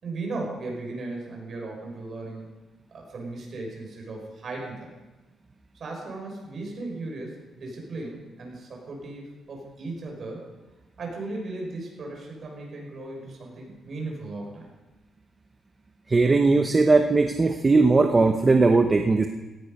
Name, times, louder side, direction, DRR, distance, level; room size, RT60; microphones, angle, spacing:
voice 1, 0.0-2.5 2.9-4.9 5.8-10.4 11.0-14.7, right 2 dB, 40° right, -1 dB, 5.7 m, -36 dB
voice 2, 16.1-19.3, right 3 dB, 20° right, 5 dB, 0.8 m, -19 dB
17.0 x 15.5 x 5.3 m, 1.1 s
cardioid pair, 160°, 0 cm